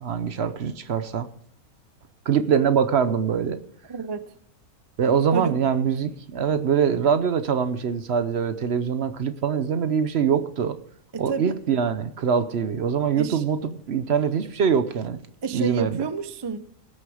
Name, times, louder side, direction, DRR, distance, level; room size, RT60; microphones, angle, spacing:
voice 1, 0.0-1.3 2.3-3.6 5.0-10.8 11.2-15.2 15.5-16.0, right 7 dB, 55° right, 0.9 m, -23 dB
voice 2, 3.9-4.3 5.3-5.6 11.1-11.6 13.2-13.4 15.4-16.6, right 5 dB, 35° right, 0.4 m, -29 dB
17.5 x 6.6 x 4.9 m
omnidirectional pair, 1.5 m